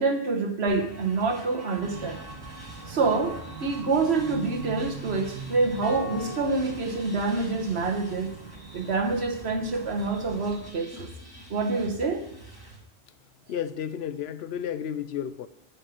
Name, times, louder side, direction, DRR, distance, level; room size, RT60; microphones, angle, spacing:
voice 1, 0.0-2.2 2.9-8.3 8.7-11.1 11.5-12.2, right 3 dB, 90° right, 1.5 m, -27 dB
sound 1, 0.7-12.8, right 1 dB, 20° left, 3.9 m, -46 dB
sound 2, 1.8-10.7, right 4 dB, 20° right, 2.5 m, -42 dB
sound 3, 5.8-8.1, left 5 dB, 45° left, 0.5 m, -41 dB
voice 2, 13.5-15.5, left 9 dB, 85° left, 0.9 m, -32 dB
9.8 x 5.4 x 5.9 m
omnidirectional pair, 1.0 m